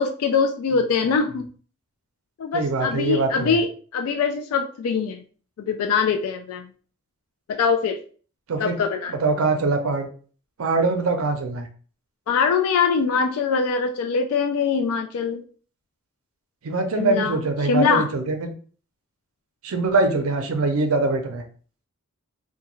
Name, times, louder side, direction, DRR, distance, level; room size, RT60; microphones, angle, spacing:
voice 1, 0.0-1.5 2.4-5.2 5.6-6.7 7.5-8.0 8.6-9.1 12.3-15.4 16.9-17.4 17.6-18.1, left 5 dB, 80° left, 6 dB, 0.3 m, -23 dB
voice 2, 2.5-3.6 8.5-8.8 9.1-10.1 10.6-11.7 16.6-18.5 19.6-21.4, right 3 dB, 70° right, 5 dB, 0.5 m, -23 dB
2.3 x 2.1 x 3.0 m, 0.42 s
head